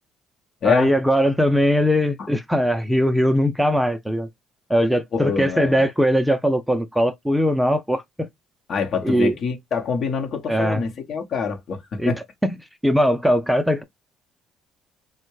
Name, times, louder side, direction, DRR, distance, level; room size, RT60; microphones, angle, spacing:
voice 1, 0.6-4.3 4.7-8.3 9.0-9.4 10.5-10.8 12.0-12.1 12.4-12.5 12.8-13.8, equal, 5° right, 0.4 m, -20 dB
voice 2, 5.1-5.9 8.7-12.2, left 6 dB, 55° left, 0.8 m, -25 dB
3.4 x 2.1 x 3.0 m
supercardioid pair, 70°, 0 cm